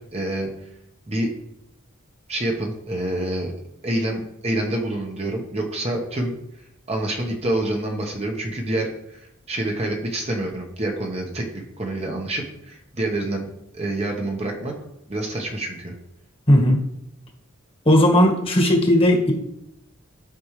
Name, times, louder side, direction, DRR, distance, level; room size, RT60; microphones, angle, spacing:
voice 1, 0.1-0.5 1.1-1.3 2.3-3.5 3.8-6.3 6.9-9.2 9.5-13.5 13.7-14.7 15.1-15.9, right 1 dB, 30° right, 1 dB, 1.1 m, -27 dB
voice 2, 16.5-16.8 17.8-19.3, equal, 25° left, 1 dB, 1.4 m, -16 dB
12.0 x 5.3 x 3.2 m, 0.81 s
head